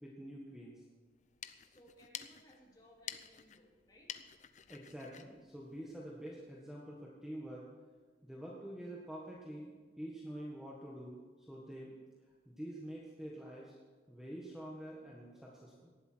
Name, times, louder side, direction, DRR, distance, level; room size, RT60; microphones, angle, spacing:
voice 1, 0.0-0.8 4.7-7.7 8.2-12.0 12.4-13.7 14.1-15.9, right 1 dB, 5° right, -4 dB, 1.6 m, -47 dB
sound 1, 1.1-6.4, left 9 dB, 40° left, 0.6 m, -51 dB
voice 2, 1.6-4.1, equal, 20° left, -3 dB, 3.1 m, -62 dB
18.5 x 12.0 x 4.6 m, 1.4 s
head